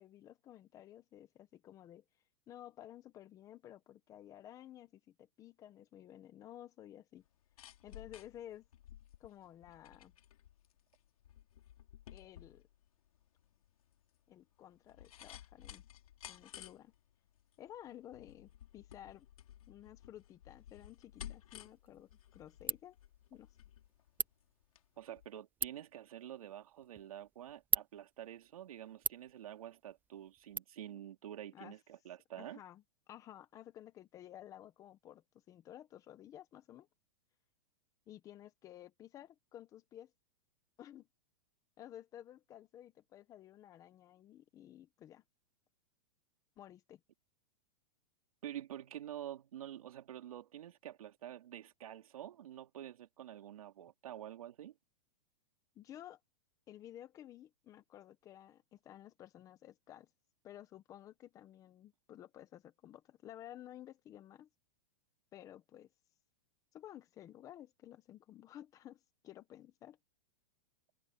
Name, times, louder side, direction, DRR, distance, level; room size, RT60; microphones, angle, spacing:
voice 1, 0.0-2.0 2.5-7.2 7.8-8.7 9.2-10.1 12.1-12.6 14.3-15.8 16.3-16.9 17.6-19.3 19.7-23.0 23.3-23.6 30.8-31.0 31.5-31.7 32.4-32.8 33.1-36.9 38.1-40.1 40.8-41.1 41.8-45.2 46.6-47.0 55.7-56.2 56.7-60.1 60.4-64.5 65.3-65.9 66.7-70.0, left 12 dB, 20° left, 1.1 m, -54 dB
sound 1, 7.2-24.9 25.2-25.3, left 11 dB, 85° left, 3.8 m, -55 dB
Ratchet pawl, 21.5-30.6, right 7 dB, 10° right, 0.6 m, -43 dB
voice 2, 25.0-32.6 48.4-54.7, right 11 dB, 80° right, 2.9 m, -48 dB
supercardioid pair, 165°, 18 cm